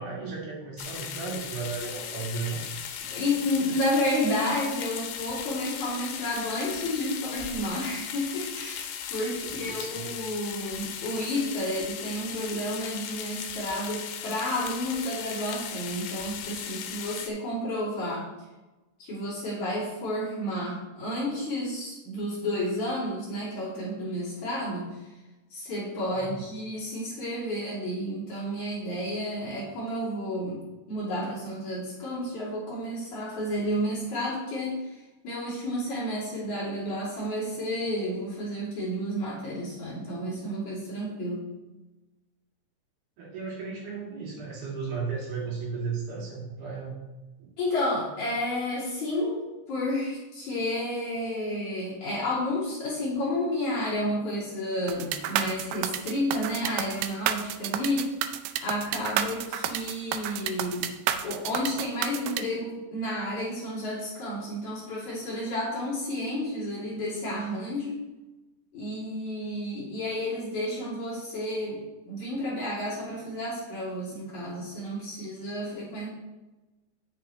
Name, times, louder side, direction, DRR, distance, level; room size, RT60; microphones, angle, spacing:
voice 1, 0.0-2.6 9.4-10.0 26.1-26.3 43.2-47.0 47.4-47.5, right 5 dB, 65° right, -5 dB, 4.0 m, -35 dB
sound 1, 0.8-17.3, left 8 dB, 80° left, 3.0 m, -37 dB
voice 2, 3.1-18.3 19.0-25.0 25.5-30.6 30.9-35.0 35.2-41.4 47.6-58.1 58.6-60.9 61.2-68.0 68.7-76.1, left 1 dB, 45° left, -8 dB, 3.9 m, -31 dB
sound 2, 54.9-62.4, right 10 dB, 80° right, 2.3 m, -30 dB
9.9 x 8.7 x 3.1 m, 1.1 s
omnidirectional pair, 4.9 m